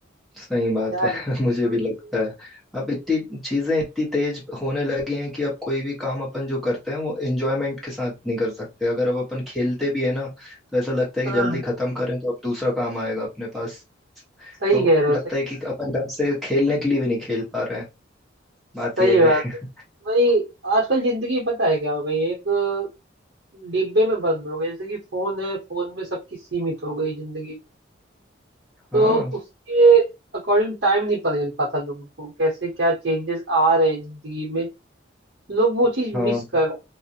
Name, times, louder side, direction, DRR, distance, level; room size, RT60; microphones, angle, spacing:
voice 1, 0.4-13.8 14.4-17.8 18.7-19.5 28.9-29.3 36.1-36.4, left 2 dB, ahead, -6 dB, 0.9 m, -26 dB
voice 2, 11.2-11.6 14.6-15.2 19.0-19.4 20.0-22.9 23.5-26.1 26.5-27.6 28.9-29.2 29.7-30.1 30.5-34.7 35.5-36.8, right 2 dB, 55° right, -4 dB, 0.8 m, -21 dB
2.4 x 2.1 x 2.6 m, 0.24 s
head